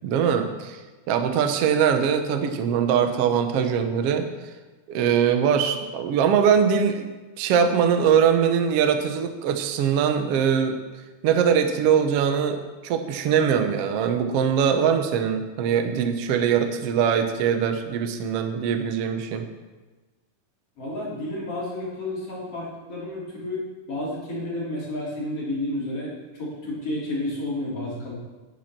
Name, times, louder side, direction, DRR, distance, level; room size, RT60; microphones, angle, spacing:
voice 1, 0.0-0.8 1.1-4.3 4.9-7.1 7.4-10.8 11.2-19.4, right 7 dB, 85° right, 6 dB, 1.3 m, -22 dB
voice 2, 20.8-26.1 26.4-28.1, left 1 dB, 40° left, -6 dB, 4.1 m, -31 dB
10.5 x 10.5 x 6.0 m, 1.2 s
omnidirectional pair, 4.4 m